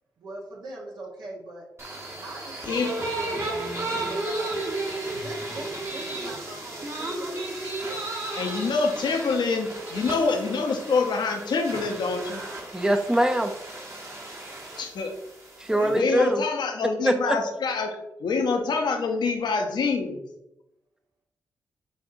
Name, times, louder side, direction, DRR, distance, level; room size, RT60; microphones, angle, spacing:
voice 1, 0.2-1.6 2.2-4.6 5.0-7.4 15.6-16.1, right 2 dB, 75° right, -2 dB, 1.2 m, -40 dB
sound 1, 1.8-16.0, right 2 dB, 35° right, 1.2 m, -34 dB
voice 2, 8.3-12.4 14.8-15.1 15.8-20.2, left 4 dB, 70° left, 4 dB, 0.7 m, -26 dB
voice 3, 12.7-13.5 15.6-16.4 17.0-17.4, right 1 dB, 10° right, 6 dB, 0.5 m, -22 dB
7.0 x 2.7 x 2.6 m, 0.87 s
supercardioid pair, 50°, 8 cm